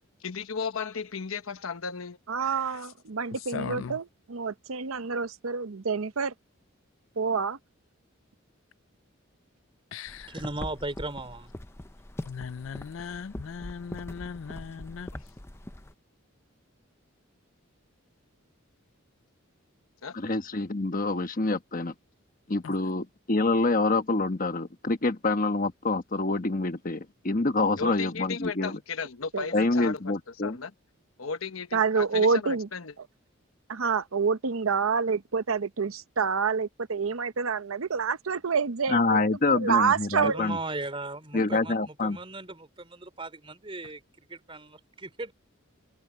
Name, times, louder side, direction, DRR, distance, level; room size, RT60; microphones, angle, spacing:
voice 1, 0.2-2.2 20.0-20.2 27.8-30.1 30.4-30.7 31.2-32.9, left 5 dB, 85° left, 1.1 m, -35 dB
voice 2, 2.3-6.3 7.2-7.6 29.3-29.5 31.7-32.7 33.7-40.4, right 5 dB, 85° right, 0.8 m, -27 dB
voice 3, 3.5-3.9 9.9-10.3 12.3-15.1, left 6 dB, 70° left, 0.4 m, -38 dB
sound 1, 10.1-15.9, left 1 dB, 10° left, 0.6 m, -42 dB
voice 4, 10.3-11.5 39.7-45.3, right 2 dB, 25° right, 3.3 m, -37 dB
voice 5, 20.1-21.9 22.5-28.8 29.5-30.6 38.9-40.6 41.3-42.2, left 3 dB, 40° left, 1.2 m, -26 dB
head